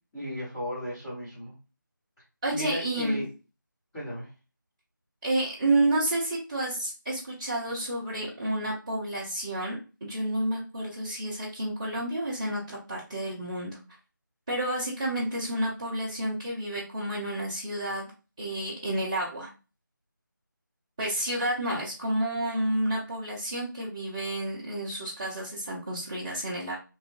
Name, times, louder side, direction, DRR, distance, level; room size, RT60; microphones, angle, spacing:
voice 1, 0.1-1.5 2.5-3.3 3.9-4.3, equal, 15° left, -14 dB, 1.1 m, -35 dB
voice 2, 2.4-3.2 5.2-13.8 14.5-18.1 18.4-19.5 21.0-26.7, right 1 dB, 15° right, -10 dB, 0.6 m, -30 dB
3.1 x 2.5 x 2.5 m, 0.31 s
figure-of-eight pair, 165°, 11 cm